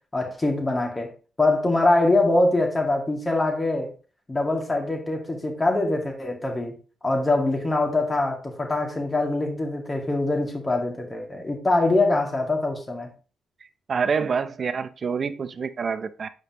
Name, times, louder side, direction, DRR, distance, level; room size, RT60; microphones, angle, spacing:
voice 1, 0.1-1.1 1.4-3.9 4.3-6.7 7.0-13.1, left 2 dB, 25° left, 1 dB, 2.3 m, -23 dB
voice 2, 13.6-16.3, right 5 dB, 50° right, 12 dB, 0.6 m, -27 dB
7.7 x 5.0 x 3.0 m, 0.36 s
cardioid pair, 70°, 0 cm